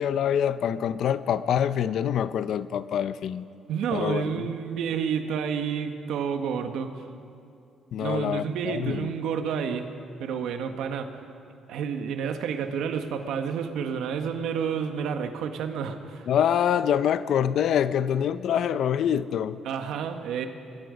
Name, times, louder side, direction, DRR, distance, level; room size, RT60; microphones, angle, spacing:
voice 1, 0.0-3.5 3.9-4.4 7.9-9.1 16.3-19.6, left 9 dB, 75° left, 0.7 m, -25 dB
voice 2, 3.7-6.9 8.0-9.9 10.2-11.2 11.7-16.3 19.7-20.5, right 7 dB, 85° right, 1.6 m, -30 dB
25.0 x 21.5 x 5.2 m
cardioid pair, 90°, 0 cm